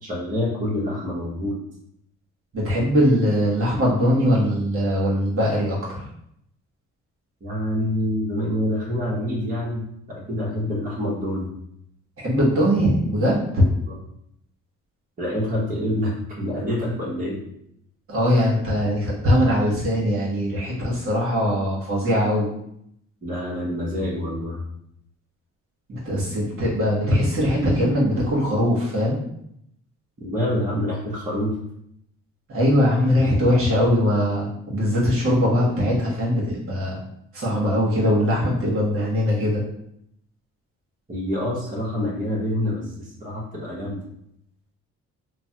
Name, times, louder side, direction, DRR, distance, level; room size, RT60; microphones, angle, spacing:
voice 1, 0.0-1.6 7.4-11.5 13.9-14.0 15.2-17.4 23.2-24.6 30.2-31.6 41.1-44.0, left 1 dB, 25° right, -6 dB, 1.0 m, -26 dB
voice 2, 2.5-5.8 12.2-13.6 18.1-22.5 25.9-29.2 32.5-37.0 37.3-39.6, equal, 45° right, -4 dB, 1.2 m, -21 dB
3.1 x 2.1 x 2.8 m, 0.74 s
cardioid pair, 90°, 30 cm